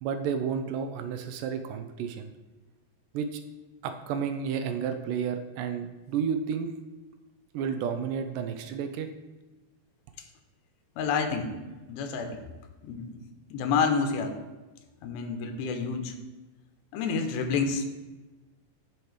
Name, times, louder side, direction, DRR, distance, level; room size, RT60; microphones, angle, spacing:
voice 1, 0.0-2.3 3.1-3.4 3.8-6.7 7.5-9.1, right 7 dB, 80° right, 7 dB, 1.9 m, -31 dB
voice 2, 11.0-11.6 11.9-12.4 12.8-13.2 13.5-14.4 15.0-16.2 16.9-17.8, left 5 dB, 90° left, 5 dB, 2.6 m, -28 dB
12.0 x 4.6 x 3.2 m, 1.2 s
omnidirectional pair, 4.2 m